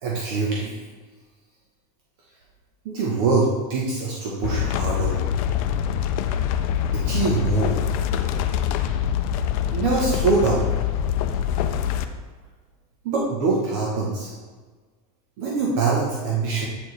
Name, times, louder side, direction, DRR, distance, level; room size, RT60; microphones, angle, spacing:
voice 1, 0.0-0.8 2.8-5.2 6.9-7.8 9.7-10.7 13.0-14.3 15.4-16.7, right 4 dB, 55° right, -3 dB, 1.0 m, -23 dB
sound 1, 4.4-12.0, left 9 dB, 55° left, 0.5 m, -24 dB
7.9 x 4.5 x 3.3 m, 1.4 s
supercardioid pair, 165°, 21 cm